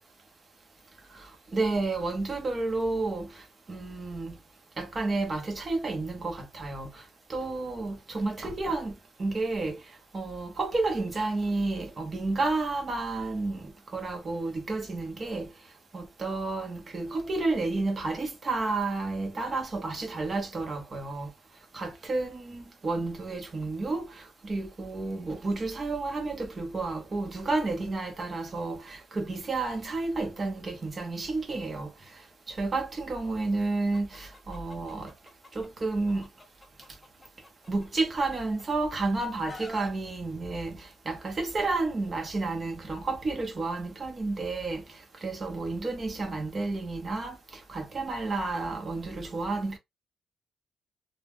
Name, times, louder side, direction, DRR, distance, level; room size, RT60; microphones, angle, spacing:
voice 1, 1.5-3.3 3.7-4.4 4.8-6.9 7.3-8.9 9.2-9.8 10.1-15.5 15.9-21.3 21.7-31.9 32.5-35.1 35.5-36.3 37.7-44.8 45.2-47.4 47.7-49.8, right 3 dB, 30° right, 0.8 m, -31 dB
Chicken rooster, 33.9-35.7 36.1-38.7 39.0-39.9, left 2 dB, 10° left, 0.5 m, -48 dB
2.2 x 2.1 x 3.4 m
cardioid pair, 150°, 0 cm